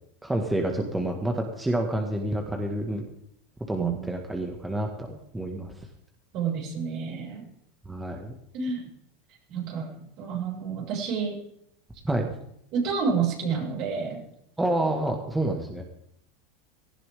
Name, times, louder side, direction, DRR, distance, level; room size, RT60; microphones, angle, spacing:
voice 1, 0.2-3.0 3.7-5.9 7.9-8.3 12.0-12.3 14.6-15.8, right 1 dB, 10° right, 2 dB, 2.0 m, -28 dB
voice 2, 3.8-4.1 6.3-7.5 8.5-8.8 9.5-9.9 10.2-11.4 12.7-14.2, right 5 dB, 55° right, -2 dB, 7.0 m, -29 dB
18.0 x 15.0 x 3.8 m, 0.74 s
hypercardioid pair, 105°, 0 cm